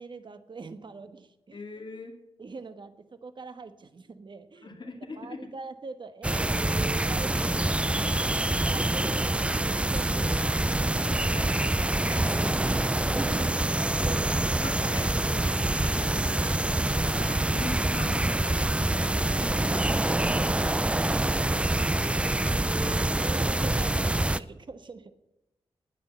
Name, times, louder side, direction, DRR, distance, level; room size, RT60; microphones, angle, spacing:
voice 1, 0.0-1.6 2.4-4.7 5.1-8.2 8.6-10.3 13.2-15.0 17.5-17.7 22.9-25.1, right 4 dB, 50° right, 10 dB, 1.3 m, -43 dB
voice 2, 1.5-2.1 4.6-5.4 11.0-13.5 14.6-16.4 17.1-20.6 22.6-23.2, left 3 dB, 50° left, 2 dB, 2.4 m, -43 dB
sound 1, 6.2-24.4, right 1 dB, 10° right, 0.4 m, -26 dB
19.0 x 6.4 x 8.3 m, 0.97 s
wide cardioid pair, 115°, 10 cm